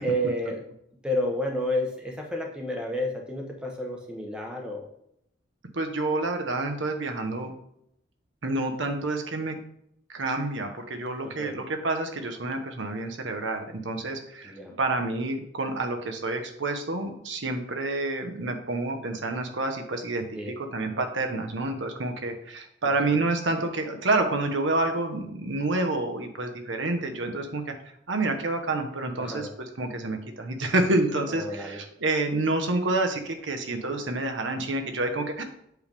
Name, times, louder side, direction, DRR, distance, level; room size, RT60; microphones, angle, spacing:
voice 1, 0.0-0.6 1.0-4.8 11.2-11.5 14.4-14.7 20.3-20.5 23.0-23.1 29.2-29.5 31.3-31.8, equal, 5° right, 0 dB, 0.9 m, -30 dB
voice 2, 5.7-7.5 8.4-9.6 10.1-27.6 28.1-35.4, right 2 dB, 80° right, 5 dB, 1.0 m, -28 dB
7.9 x 3.4 x 5.2 m, 0.75 s
head